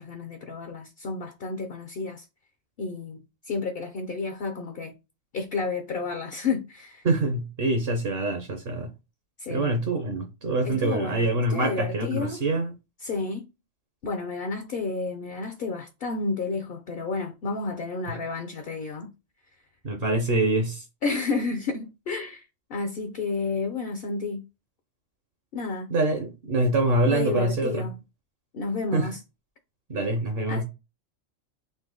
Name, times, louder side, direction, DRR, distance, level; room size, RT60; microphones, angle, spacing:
voice 1, 0.0-2.2 2.8-4.9 5.3-7.0 9.4-9.7 10.6-12.4 13.0-13.5 14.0-19.1 21.0-24.4 25.5-25.9 27.1-28.0 28.5-29.2 30.5-30.6, left 4 dB, 55° left, 0.8 m, -31 dB
voice 2, 7.0-8.9 9.5-12.7 18.1-18.2 19.8-20.8 25.9-27.9 28.9-29.1 29.9-30.6, right 2 dB, 55° right, 1.0 m, -25 dB
4.1 x 2.8 x 3.8 m
omnidirectional pair, 1.3 m